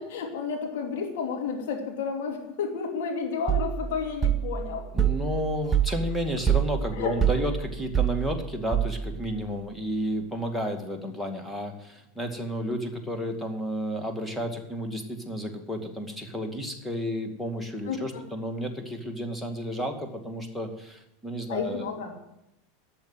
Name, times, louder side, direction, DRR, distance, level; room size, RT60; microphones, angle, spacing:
voice 1, 0.0-4.9 6.9-7.2 17.9-18.2 21.5-22.1, left 5 dB, 60° left, 2 dB, 2.7 m, -31 dB
sound 1, 3.5-9.3, right 8 dB, 20° right, 1.0 m, -27 dB
voice 2, 4.9-21.9, equal, 5° left, 4 dB, 2.2 m, -32 dB
12.0 x 7.6 x 9.2 m, 0.85 s
figure-of-eight pair, 80°, 0 cm